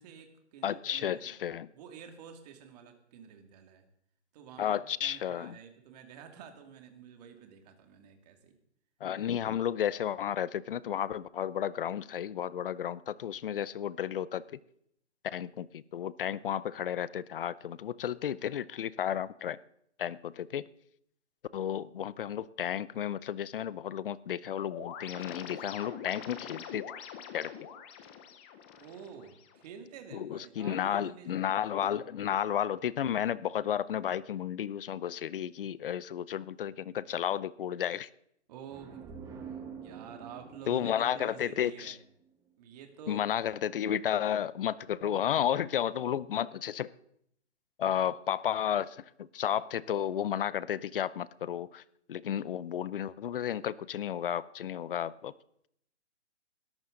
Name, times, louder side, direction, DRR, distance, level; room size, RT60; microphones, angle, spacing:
voice 1, 0.0-1.3 1.7-3.9 4.3-8.6 28.8-31.4 38.5-39.1 39.8-42.0 42.6-43.2, right 7 dB, 35° right, 5 dB, 2.4 m, -49 dB
voice 2, 0.6-1.7 4.6-5.6 9.0-14.4 15.2-19.6 20.0-20.7 21.5-26.8 27.3-27.5 30.1-38.1 40.7-41.9 43.1-46.9 47.8-51.8 52.1-55.3, left 10 dB, 50° left, 19 dB, 0.7 m, -32 dB
sound 1, 24.7-29.7, left 8 dB, 10° left, 0.5 m, -44 dB
sound 2, 38.7-42.4, right 6 dB, 10° right, 1.1 m, -47 dB
21.0 x 13.5 x 3.9 m, 0.70 s
hypercardioid pair, 155°, 35 cm